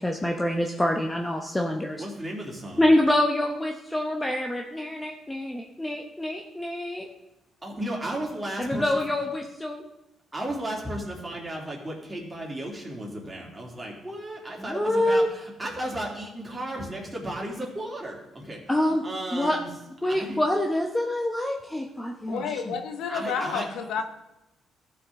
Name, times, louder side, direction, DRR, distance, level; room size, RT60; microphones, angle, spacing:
voice 1, 0.0-2.0 2.8-7.1 8.6-9.8 14.7-15.3 18.7-19.0 19.3-19.6 20.0-22.7, left 1 dB, 10° left, 1 dB, 1.0 m, -26 dB
voice 2, 2.0-2.9 7.6-9.0 10.3-19.7 20.0-20.4 23.1-23.7, right 1 dB, 20° right, -2 dB, 3.1 m, -34 dB
voice 3, 22.3-24.0, left 6 dB, 80° left, 6 dB, 0.9 m, -30 dB
14.0 x 6.0 x 3.8 m, 0.95 s
cardioid pair, 80°, 0 cm